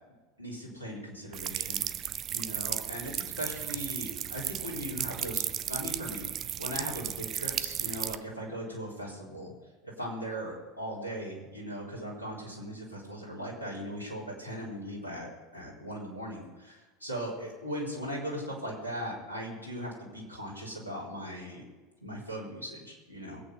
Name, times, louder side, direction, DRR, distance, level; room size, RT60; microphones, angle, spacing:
voice 1, 0.4-1.8 2.3-5.4 5.7-6.3 6.6-9.5 9.8-21.6 22.0-23.4, equal, 85° left, -4 dB, 4.2 m, -39 dB
sound 1, 1.3-8.1, right 10 dB, 35° right, 0.6 m, -35 dB
22.0 x 8.8 x 5.5 m, 1.2 s
figure-of-eight pair, 75°, 0 cm